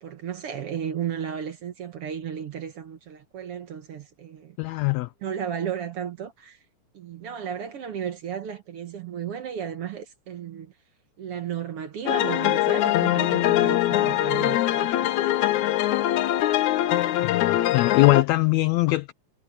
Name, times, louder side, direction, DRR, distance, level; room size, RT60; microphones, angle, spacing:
voice 1, 0.0-4.6 5.2-6.6 6.9-10.7 11.2-16.2, right 8 dB, 60° right, 1.8 m, -34 dB
voice 2, 4.6-5.1 17.2-19.1, left 19 dB, 85° left, 1.5 m, -22 dB
sound 1, 12.1-18.2, left 14 dB, 70° left, 2.1 m, -22 dB
omnidirectional pair, 3.7 m